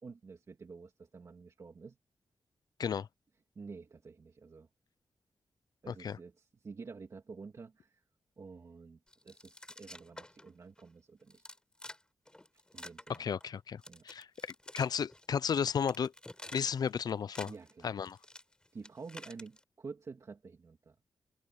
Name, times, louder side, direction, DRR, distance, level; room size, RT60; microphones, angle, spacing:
voice 1, 0.0-2.0 3.5-4.7 5.8-8.0 8.4-9.0 9.2-11.5 12.7-13.3 13.9-14.0 17.4-17.9 18.7-20.9, right 4 dB, 45° right, 2.9 m, -49 dB
voice 2, 5.9-6.2 13.1-16.1 16.5-17.5 17.8-18.2, left 7 dB, 60° left, 0.5 m, -34 dB
sound 1, 9.1-10.5 10.8-10.9 11.3-12.0 12.3-13.6 13.8-15.3 15.6-16.9 17.2-19.6, left 1 dB, 10° left, 6.1 m, -50 dB
wide cardioid pair, 150°, 7 cm